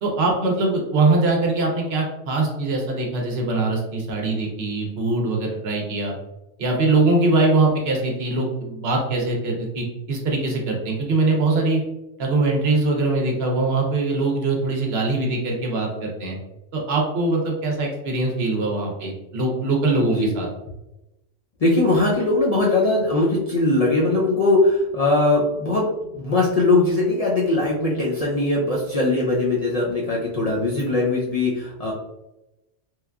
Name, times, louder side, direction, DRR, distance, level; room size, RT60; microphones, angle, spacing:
voice 1, 0.0-6.1 6.6-11.8 12.2-16.4 16.7-20.5, right 2 dB, 65° right, 0 dB, 0.8 m, -22 dB
voice 2, 21.6-31.9, left 2 dB, 65° left, -5 dB, 0.4 m, -20 dB
3.1 x 2.4 x 2.2 m, 0.95 s
omnidirectional pair, 1.2 m